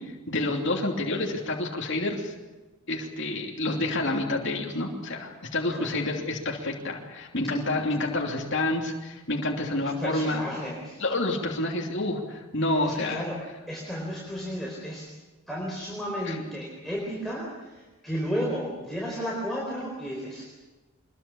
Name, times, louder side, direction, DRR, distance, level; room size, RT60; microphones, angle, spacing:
voice 1, 0.0-2.3 2.9-10.5 11.0-13.2 16.3-16.4, left 2 dB, 55° left, 0 dB, 3.0 m, -28 dB
voice 2, 9.8-11.0 12.8-13.4 13.7-15.1 15.5-20.7, equal, ahead, -4 dB, 4.4 m, -33 dB
24.5 x 22.0 x 7.2 m, 1.2 s
head